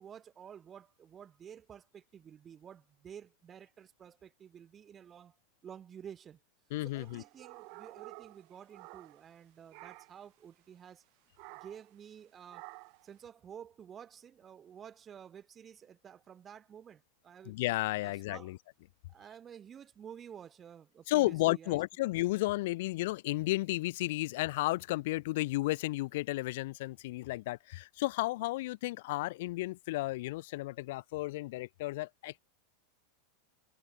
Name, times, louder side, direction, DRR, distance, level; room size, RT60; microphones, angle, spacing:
voice 1, 0.0-5.4 5.6-6.4 6.8-11.0 11.5-12.7 13.0-17.6 18.0-18.5 19.1-21.8, right 8 dB, 20° right, 0.6 m, -51 dB
voice 2, 6.7-7.2 17.5-18.6 21.1-32.4, left 19 dB, 60° left, 0.5 m, -33 dB
sound 1, 7.0-9.4 9.7-10.3 11.4-11.9 12.5-13.1, right 39 dB, 45° right, 1.0 m, -51 dB
supercardioid pair, 155°, 0 cm